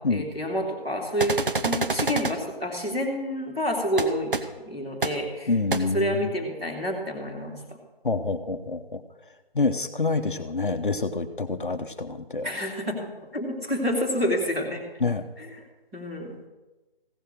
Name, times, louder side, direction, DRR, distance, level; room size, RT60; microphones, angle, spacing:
voice 1, 0.0-4.4 4.6-5.5 5.9-7.6 12.4-14.8 15.4-15.5 15.9-16.3, equal, 5° right, -10 dB, 0.9 m, -28 dB
sound 1, 1.2-2.3 4.0-4.1 4.3-4.4 5.0-5.1 5.7-5.8, right 3 dB, 60° right, 0.9 m, -26 dB
voice 2, 5.5-6.3 8.0-9.0 9.5-12.5 15.0-15.3, left 3 dB, 55° left, 8 dB, 0.8 m, -27 dB
15.5 x 5.6 x 6.2 m, 1.1 s
figure-of-eight pair, 155°, 30 cm